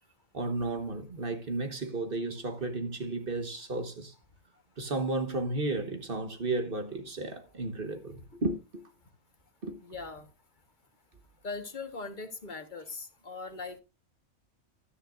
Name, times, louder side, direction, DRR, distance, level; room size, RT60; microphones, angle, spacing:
voice 1, 0.3-4.1 4.8-8.6 9.6-9.8, right 2 dB, 40° right, 1.5 m, -33 dB
voice 2, 9.8-10.3 11.4-13.8, left 3 dB, 35° left, 1.4 m, -40 dB
13.0 x 9.9 x 2.5 m
omnidirectional pair, 1.4 m